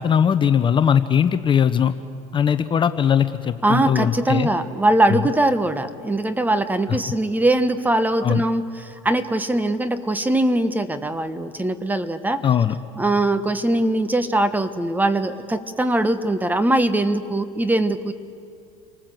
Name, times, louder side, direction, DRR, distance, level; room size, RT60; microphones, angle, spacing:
voice 1, 0.0-1.9 2.3-4.5 5.1-5.2 8.2-8.4 12.4-12.7, left 8 dB, 30° left, 10 dB, 0.8 m, -19 dB
voice 2, 3.6-12.4 13.0-18.1, right 1 dB, 10° right, 11 dB, 1.3 m, -21 dB
28.5 x 19.5 x 7.8 m, 2.4 s
supercardioid pair, 95°, 16 cm